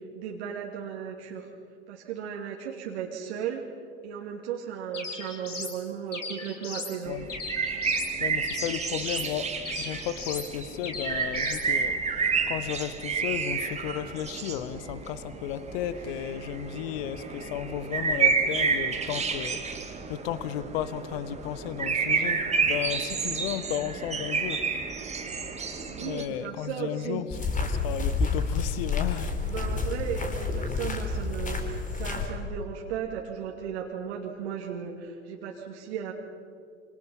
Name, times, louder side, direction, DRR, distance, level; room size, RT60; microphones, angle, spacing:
voice 1, 0.0-1.5 1.9-3.6 4.0-7.2 25.9-27.2 29.4-36.1, right 8 dB, 55° right, 2.7 m, -35 dB
sound 1, 4.9-5.8 6.1-7.0 7.3-8.1 8.5-9.3 9.7-10.5 10.8-11.7, left 4 dB, 75° left, 3.5 m, -37 dB
sound 2, 7.1-26.2, right 5 dB, 15° right, 2.8 m, -30 dB
voice 2, 8.2-24.7 25.9-29.4, left 10 dB, 50° left, 1.4 m, -34 dB
sound 3, 27.3-32.3, left 4 dB, 20° left, 4.0 m, -29 dB
28.0 x 27.0 x 5.6 m
figure-of-eight pair, 80°, 37 cm